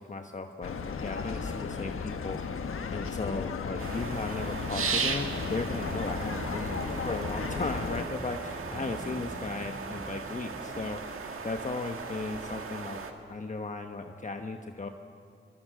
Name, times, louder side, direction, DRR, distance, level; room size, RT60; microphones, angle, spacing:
voice 1, 0.0-2.6 2.9-13.0 13.3-14.9, left 3 dB, 35° left, 5 dB, 1.2 m, -36 dB
sound 1, 0.6-8.0, left 5 dB, 85° left, 1.2 m, -35 dB
sound 2, 3.8-13.1, right 5 dB, 90° right, 1.8 m, -37 dB
sound 3, 5.8-11.0, right 1 dB, 15° right, 3.6 m, -43 dB
24.5 x 22.0 x 7.7 m, 2.4 s
cardioid pair, 75°, 21 cm